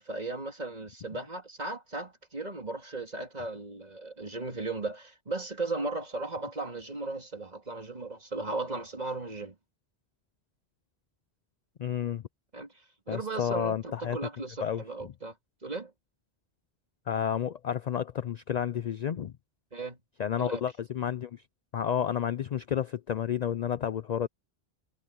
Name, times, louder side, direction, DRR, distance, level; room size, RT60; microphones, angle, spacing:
voice 1, 0.0-9.5 12.5-15.3 15.6-15.9 19.7-20.0 20.4-20.6, right 3 dB, 40° right, 2.8 m, -36 dB
voice 2, 11.8-12.2 13.1-14.2 14.6-14.8 17.1-19.3 20.2-21.4 21.7-24.3, left 9 dB, 55° left, 0.5 m, -31 dB
omnidirectional pair, 1.0 m